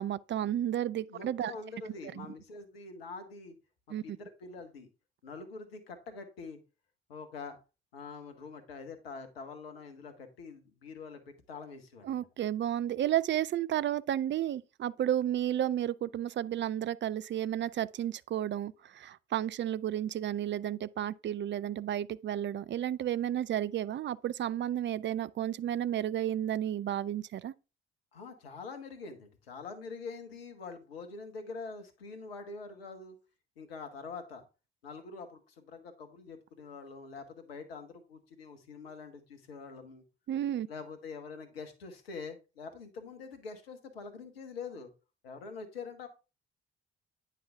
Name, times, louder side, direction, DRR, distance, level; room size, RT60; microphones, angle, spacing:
voice 1, 0.0-1.5 2.2-2.3 3.9-4.0 12.0-27.5 40.3-40.7, right 11 dB, 40° right, 0.5 m, -32 dB
voice 2, 1.1-3.6 4.0-4.9 5.2-6.6 7.1-7.6 7.9-12.3 28.1-33.2 33.6-34.4 34.8-40.0 40.7-44.9 45.2-46.1, left 4 dB, 85° left, 1.3 m, -45 dB
9.5 x 5.8 x 3.4 m
figure-of-eight pair, 45°, 29 cm